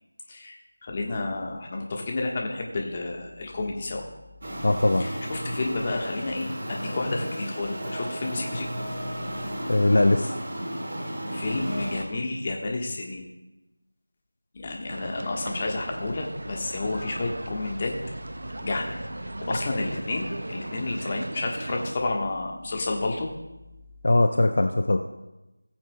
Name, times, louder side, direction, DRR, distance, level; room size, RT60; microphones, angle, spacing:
voice 1, 0.3-4.1 5.0-8.7 11.3-13.3 14.5-18.0 18.6-19.0 19.2-23.3, left 2 dB, 25° left, 1 dB, 1.2 m, -31 dB
sound 1, 4.4-12.0, equal, 40° right, 1.9 m, -34 dB
voice 2, 4.6-5.0 9.7-10.3 24.0-25.0, left 2 dB, 50° left, 5 dB, 0.6 m, -20 dB
sound 2, 14.9-21.9, right 1 dB, 60° right, 0.5 m, -36 dB
19.0 x 7.3 x 2.2 m, 1.0 s
figure-of-eight pair, 170°, 0 cm